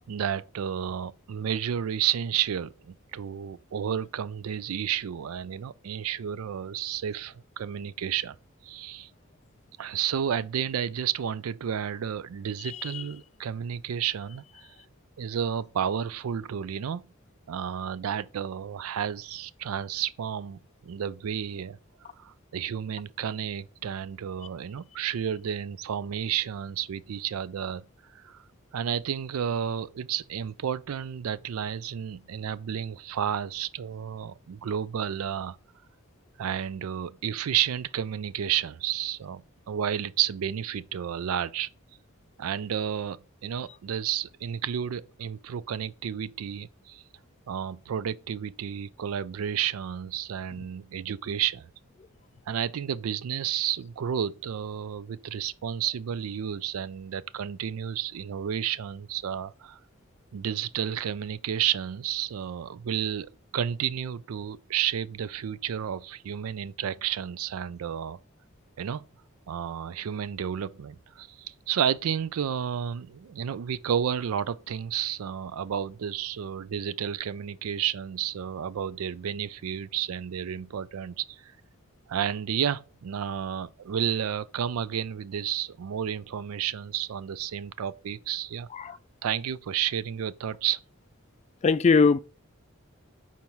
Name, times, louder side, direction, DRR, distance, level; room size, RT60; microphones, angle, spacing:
voice 1, 0.1-8.4 8.6-9.1 9.8-14.7 15.2-17.0 17.5-27.8 28.1-28.4 28.7-35.6 36.4-41.7 42.4-47.0 47.5-51.7 52.5-59.8 60.3-68.2 68.8-69.1 69.5-81.5 82.1-88.7 89.2-90.8, right 9 dB, 85° right, 0.4 m, -31 dB
voice 2, 91.6-92.2, left 4 dB, 30° left, 0.3 m, -21 dB
4.5 x 4.3 x 5.4 m
head